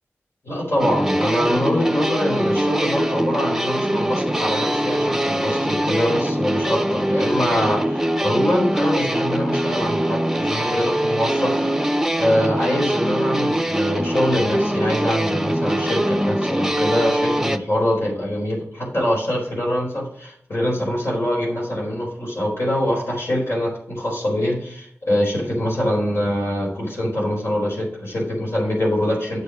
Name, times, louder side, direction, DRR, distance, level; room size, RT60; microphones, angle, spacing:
voice 1, 0.4-29.4, equal, 60° left, -4 dB, 4.6 m, -24 dB
sound 1, 0.8-17.6, right 1 dB, 10° right, 0.6 m, -22 dB
8.1 x 7.0 x 5.1 m, 0.68 s
wide cardioid pair, 75°, 5 cm